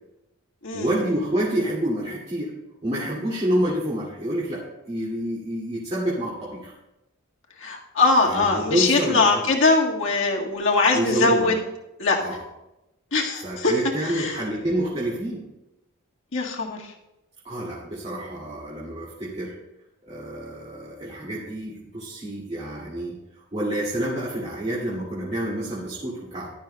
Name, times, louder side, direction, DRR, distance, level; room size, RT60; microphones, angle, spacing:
voice 1, 0.7-2.5 2.8-6.7 8.3-9.4 10.9-11.5 12.2-12.4 13.4-15.5 17.4-19.5 20.0-23.2 23.5-26.5, right 1 dB, 30° right, -7 dB, 2.2 m, -28 dB
voice 2, 7.6-11.6 12.0-12.2 13.1-14.4 16.3-16.9, left 3 dB, 60° left, 0 dB, 1.6 m, -22 dB
15.5 x 12.0 x 2.2 m, 0.94 s
head